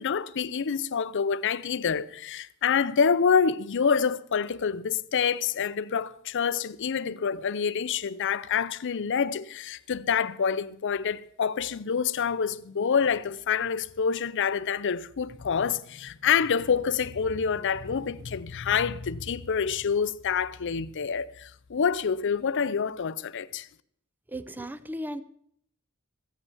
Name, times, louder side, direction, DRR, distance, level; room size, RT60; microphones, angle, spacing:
voice 1, 0.0-23.7, left 6 dB, 55° left, 0.5 m, -27 dB
voice 2, 24.3-25.2, equal, 10° right, 0.5 m, -35 dB
15.5 x 8.1 x 7.1 m
head